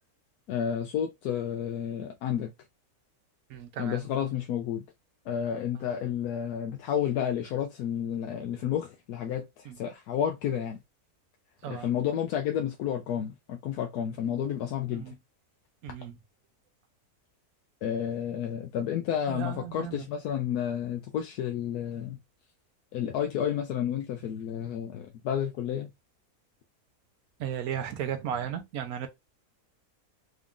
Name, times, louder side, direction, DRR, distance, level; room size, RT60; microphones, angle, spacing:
voice 1, 0.5-2.5 3.8-4.8 5.3-10.8 11.7-15.1 17.8-22.2 22.9-25.9, left 9 dB, 85° left, 1.1 m, -31 dB
voice 2, 3.5-4.3 5.7-5.9 9.6-9.8 11.6-11.9 14.9-15.1 15.8-16.2 19.3-20.1 27.4-29.1, right 9 dB, 75° right, 1.2 m, -35 dB
4.0 x 2.5 x 3.5 m
omnidirectional pair, 1.6 m